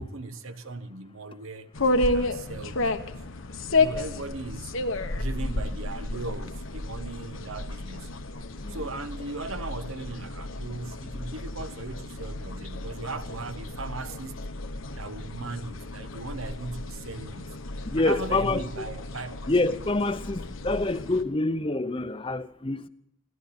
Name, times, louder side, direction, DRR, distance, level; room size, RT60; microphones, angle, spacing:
voice 1, 0.0-1.7 2.0-3.1 3.7-4.7 5.1-8.2 8.7-14.4 15.0-17.6 18.0-19.4, right 3 dB, 75° right, 1.2 m, -38 dB
sound 1, 1.7-21.2, left 2 dB, 70° left, 1.1 m, -32 dB
voice 2, 17.8-18.8 19.5-22.9, left 2 dB, 25° left, 0.6 m, -27 dB
22.0 x 15.5 x 4.2 m
head